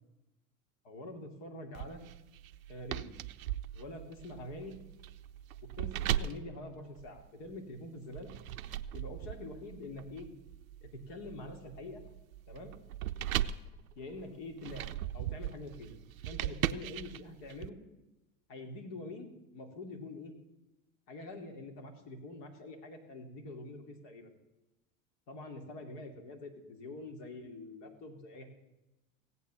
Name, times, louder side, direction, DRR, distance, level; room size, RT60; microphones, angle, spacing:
voice 1, 0.8-2.0 2.7-3.2 3.7-4.8 5.8-8.3 8.9-10.3 10.8-12.0 12.5-12.8 14.0-16.0 16.2-17.8 18.5-20.3 21.1-24.3 25.3-28.5, left 2 dB, 60° left, 4 dB, 2.7 m, -45 dB
sound 1, 1.7-7.6 8.1-17.7, right 11 dB, 85° right, 0.6 m, -39 dB
16.5 x 8.4 x 7.0 m, 0.99 s
hypercardioid pair, 85°, 40 cm